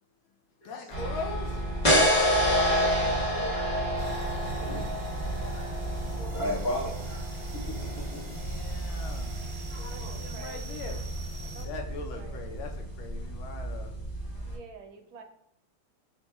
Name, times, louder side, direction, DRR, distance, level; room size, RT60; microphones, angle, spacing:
voice 1, 0.6-1.6 8.2-9.4 10.0-11.1 11.6-13.9, left 4 dB, 75° left, 4 dB, 1.4 m, -41 dB
sound 1, 0.9-14.5, equal, 45° left, 0.5 m, -29 dB
voice 2, 3.0-3.7 4.6-4.9 5.2-7.2 7.5-8.3 9.7-10.2 11.4-11.5, equal, 60° left, -4 dB, 0.9 m, -37 dB
sound 2, 3.9-11.7, right 2 dB, 40° right, 0.7 m, -42 dB
voice 3, 9.9-11.0 11.5-11.7 12.1-12.4 14.5-15.2, right 6 dB, 75° right, 4 dB, 1.3 m, -47 dB
4.0 x 2.2 x 4.5 m, 0.77 s
omnidirectional pair, 2.4 m